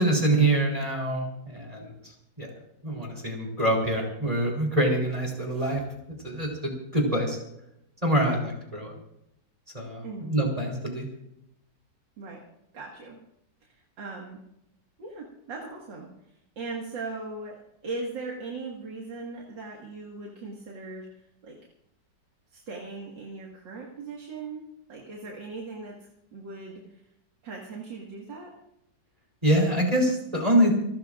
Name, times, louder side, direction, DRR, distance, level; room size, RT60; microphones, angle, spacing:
voice 1, 0.0-1.9 2.4-2.5 2.8-5.8 6.2-7.4 8.0-8.9 9.7-11.1 29.4-30.7, right 1 dB, 20° right, 0 dB, 3.9 m, -25 dB
voice 2, 10.0-10.4 12.2-12.5 12.7-13.2 13.6-14.4 15.0-16.1 16.6-21.1 21.4-21.6 22.5-27.0 27.4-28.5, right 3 dB, 85° right, -2 dB, 2.6 m, -39 dB
29.5 x 13.5 x 2.5 m, 0.81 s
omnidirectional pair, 1.9 m